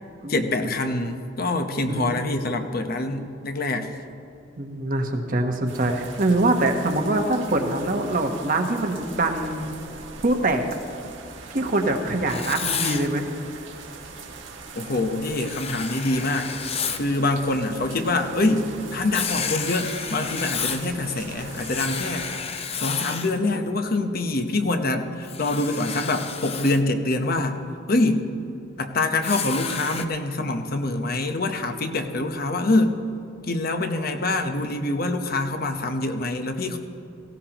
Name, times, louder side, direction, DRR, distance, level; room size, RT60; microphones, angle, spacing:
voice 1, 0.3-3.9 14.7-16.5 17.0-22.3 22.7-27.6 27.9-28.3 28.8-33.0 33.4-36.8, left 2 dB, 55° left, 6 dB, 0.9 m, -25 dB
voice 2, 4.6-9.7 10.2-10.6 11.5-13.3, right 2 dB, 50° right, 4 dB, 1.1 m, -24 dB
sound 1, 5.7-22.4, right 4 dB, 85° right, 1.6 m, -41 dB
Writing, 12.3-13.1 15.2-17.0 19.1-20.9 21.5-23.4 25.2-26.8 29.2-30.0, left 6 dB, 35° left, 0.6 m, -31 dB
17.5 x 16.0 x 3.0 m, 2.7 s
head